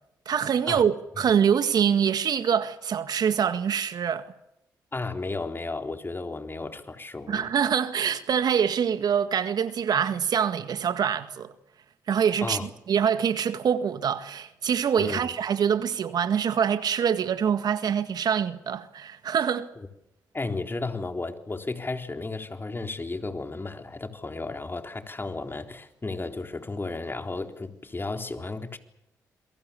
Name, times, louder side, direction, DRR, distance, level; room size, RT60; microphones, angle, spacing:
voice 1, 0.3-4.3 7.3-11.5 12.1-19.7, right 8 dB, 65° right, 1.8 m, -25 dB
voice 2, 4.9-7.5 12.4-12.7 15.0-15.3 20.3-28.8, left 3 dB, 30° left, 3.9 m, -33 dB
28.0 x 23.0 x 7.1 m
hypercardioid pair, 45°, 7 cm